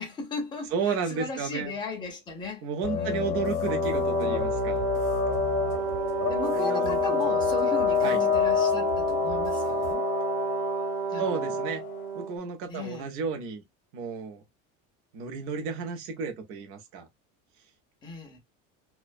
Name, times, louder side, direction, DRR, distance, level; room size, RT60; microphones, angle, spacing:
voice 1, 0.0-3.4 6.3-10.1 11.1-11.5 12.7-13.1 18.0-18.4, left 3 dB, 15° left, 0.4 m, -37 dB
voice 2, 0.7-1.7 2.6-4.8 6.4-7.3 8.0-8.2 11.2-11.8 12.1-13.6 13.9-14.4 15.1-17.1, right 5 dB, 40° right, 0.5 m, -32 dB
sound 1, 2.8-12.1, left 11 dB, 65° left, 0.7 m, -28 dB
sound 2, 3.1-9.9, right 5 dB, 60° right, 0.9 m, -44 dB
Brass instrument, 3.6-12.4, right 7 dB, 85° right, 1.0 m, -31 dB
2.3 x 2.2 x 2.4 m
cardioid pair, 175°, 36 cm